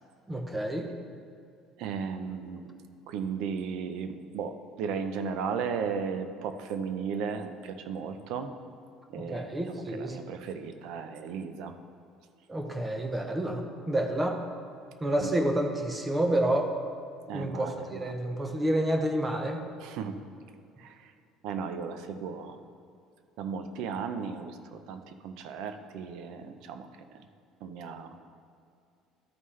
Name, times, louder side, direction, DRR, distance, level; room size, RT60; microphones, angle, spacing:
voice 1, 0.3-0.9 9.2-10.2 12.5-14.4 15.0-16.7 17.3-19.7, right 1 dB, 15° right, 4 dB, 0.7 m, -29 dB
voice 2, 1.8-2.8 3.1-8.5 9.1-11.8 15.2-15.3 17.3-18.0 19.8-20.2 20.8-21.1 21.4-22.6 23.4-27.2 27.6-28.2, right 6 dB, 70° right, 9 dB, 0.6 m, -35 dB
12.5 x 5.5 x 3.2 m, 2.4 s
cardioid pair, 120°, 0 cm